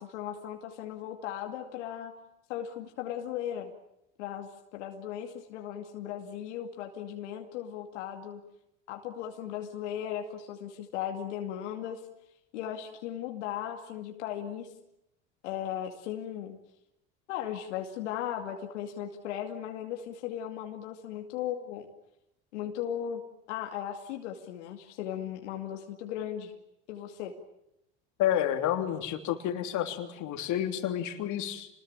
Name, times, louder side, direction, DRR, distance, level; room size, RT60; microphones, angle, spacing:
voice 1, 0.0-2.1 2.5-3.7 4.2-8.4 8.9-12.0 12.5-14.7 15.4-16.6 17.3-21.9 22.5-23.2 23.5-26.5 26.9-27.3, left 10 dB, 85° left, 3 dB, 2.5 m, -37 dB
voice 2, 28.2-31.7, left 11 dB, 55° left, 6 dB, 3.2 m, -30 dB
27.5 x 21.0 x 8.9 m, 0.84 s
supercardioid pair, 95°, 34 cm